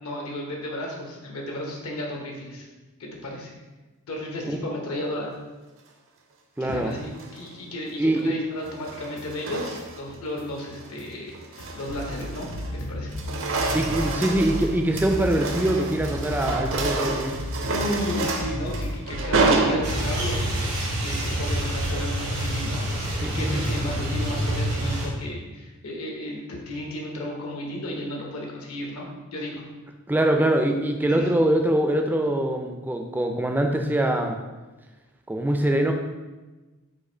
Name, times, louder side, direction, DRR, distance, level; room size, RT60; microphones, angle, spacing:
voice 1, 0.0-2.7 3.0-3.5 4.1-5.3 6.6-13.1 17.7-22.8 23.2-29.7 31.1-31.3, left 1 dB, 75° left, -1 dB, 0.9 m, -34 dB
voice 2, 6.6-6.9 8.0-8.3 13.7-17.4 23.2-23.9 30.1-34.4 35.3-35.9, right 1 dB, 10° right, 4 dB, 0.3 m, -23 dB
sound 1, 7.0-7.5 8.6-10.2 10.6-10.9 11.3-12.8 13.0-20.4, right 3 dB, 60° right, 0.5 m, -29 dB
sound 2, 8.6-20.9 21.2-24.0, left 1 dB, 55° left, 0.5 m, -35 dB
sound 3, 19.8-25.1, right 1 dB, 90° right, 1.3 m, -27 dB
4.8 x 2.5 x 4.3 m, 1.2 s
head